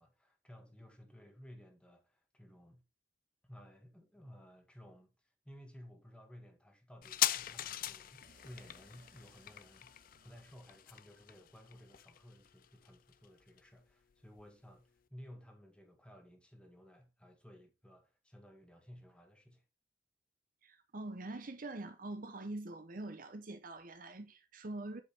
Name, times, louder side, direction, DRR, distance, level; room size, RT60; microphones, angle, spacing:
voice 1, 0.0-2.8 3.4-5.1 5.4-9.9 10.2-19.6, equal, 5° left, 1.7 m, -56 dB
sound 1, 7.0-14.1 14.4-14.5, left 12 dB, 50° left, 0.4 m, -40 dB
sound 2, 8.2-12.1, right 2 dB, 75° right, 2.5 m, -68 dB
voice 2, 20.6-25.0, right 2 dB, 50° right, 0.8 m, -44 dB
8.5 x 5.4 x 3.4 m
head